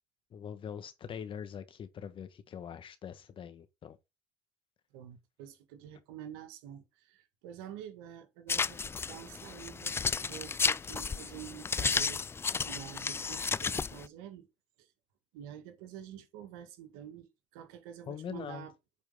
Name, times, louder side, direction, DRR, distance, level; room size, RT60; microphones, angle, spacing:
voice 1, 0.3-4.0 18.1-18.7, left 8 dB, 45° left, 1.4 m, -43 dB
voice 2, 4.9-12.2 12.6-14.5 14.8-14.9 15.3-18.7, right 10 dB, 90° right, 1.7 m, -48 dB
sound 1, 8.5-14.1, left 5 dB, 20° left, 0.3 m, -33 dB
8.3 x 4.4 x 3.5 m
supercardioid pair, 90°, 12 cm